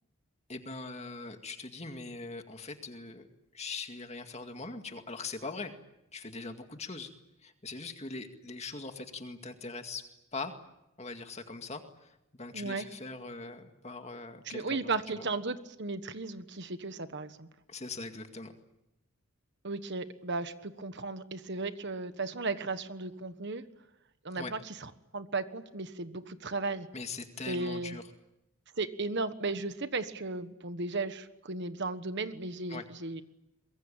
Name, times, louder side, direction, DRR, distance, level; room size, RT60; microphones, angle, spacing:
voice 1, 0.5-3.2 3.5-5.7 6.1-7.1 7.4-10.5 11.0-15.2 17.7-18.5 24.3-24.5 26.9-28.0 32.7-32.8, left 3 dB, 30° left, 6 dB, 2.1 m, -41 dB
voice 2, 12.5-12.9 14.5-17.5 19.6-23.6 24.2-26.9 27.5-28.0 28.8-33.2, right 3 dB, 55° right, 11 dB, 1.4 m, -35 dB
24.0 x 22.5 x 9.0 m, 0.89 s
head